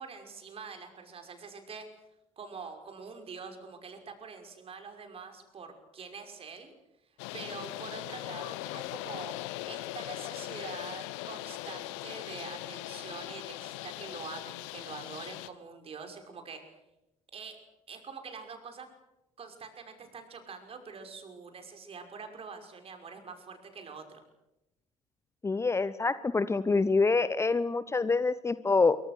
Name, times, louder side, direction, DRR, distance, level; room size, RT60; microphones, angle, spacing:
voice 1, 0.0-1.9 2.4-6.7 7.3-9.3 9.6-16.6 17.3-17.6 17.9-18.9 19.4-24.2, right 5 dB, 35° right, 5 dB, 5.8 m, -45 dB
sound 1, 7.2-15.5, left 18 dB, 60° left, 1.3 m, -40 dB
voice 2, 25.4-29.0, left 4 dB, 15° left, 15 dB, 1.0 m, -26 dB
27.5 x 24.5 x 6.7 m, 0.90 s
figure-of-eight pair, 60°, 17 cm